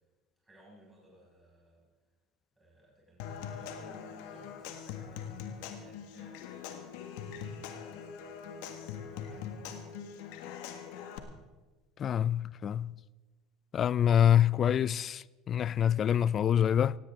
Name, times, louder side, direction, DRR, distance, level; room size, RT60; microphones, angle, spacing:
voice 1, 0.4-1.9 2.6-6.6 6.9-9.5, right 1 dB, 15° right, 6.5 m, -59 dB
Human voice / Acoustic guitar / Percussion, 3.2-11.2, left 7 dB, 70° left, 1.7 m, -42 dB
voice 2, 12.0-12.9 13.7-17.0, left 9 dB, 40° left, 0.4 m, -26 dB
17.5 x 17.0 x 3.8 m
hypercardioid pair, 80°, 0 cm